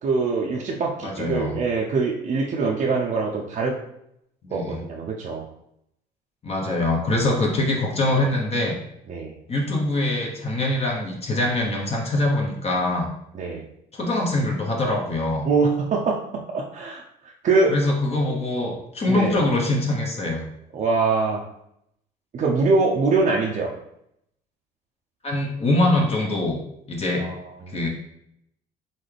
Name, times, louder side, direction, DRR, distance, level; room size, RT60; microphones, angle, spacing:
voice 1, 0.0-3.8 4.5-5.4 9.1-9.3 13.3-13.6 15.4-17.8 19.1-19.4 20.7-21.4 22.3-23.7 27.2-27.9, right 4 dB, 45° right, -2 dB, 0.7 m, -23 dB
voice 2, 1.0-1.6 4.5-4.8 6.4-8.7 9.5-13.1 13.9-15.4 17.7-20.4 25.2-26.6 26.9-27.3 27.7-27.9, left 2 dB, 35° left, -1 dB, 1.0 m, -23 dB
4.1 x 3.5 x 3.3 m, 0.76 s
cardioid pair, 95°, 17 cm